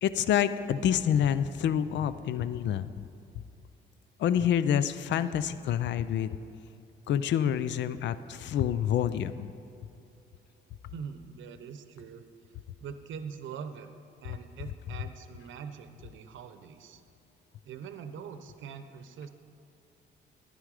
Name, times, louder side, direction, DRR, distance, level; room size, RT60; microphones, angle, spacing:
voice 1, 0.0-2.9 4.2-6.4 7.1-9.5, left 9 dB, 65° left, 14 dB, 0.5 m, -27 dB
voice 2, 10.9-12.2 12.8-13.9 14.2-17.0 17.6-19.3, right 6 dB, 75° right, 9 dB, 0.8 m, -43 dB
11.0 x 10.0 x 4.8 m, 2.8 s
cardioid pair, 90°, 20 cm